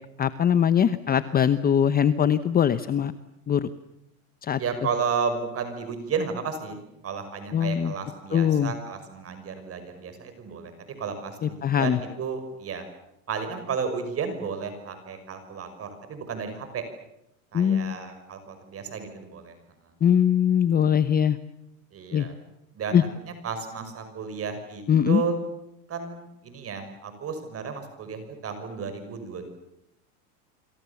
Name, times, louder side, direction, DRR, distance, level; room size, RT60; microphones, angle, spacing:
voice 1, 0.2-3.1 3.5-3.7 4.4-4.6 7.5-7.9 8.3-8.7 11.4-12.0 17.5-18.0 20.0-21.4 22.1-22.3 22.9-23.0 24.9-25.2, left 8 dB, 20° left, 13 dB, 0.9 m, -21 dB
voice 2, 4.6-12.8 13.3-16.8 17.5-19.5 21.9-22.3 22.7-23.1 23.4-25.4 25.9-29.5, right 5 dB, 30° right, 8 dB, 5.9 m, -33 dB
28.0 x 26.5 x 7.2 m, 0.83 s
supercardioid pair, 130°, 45 cm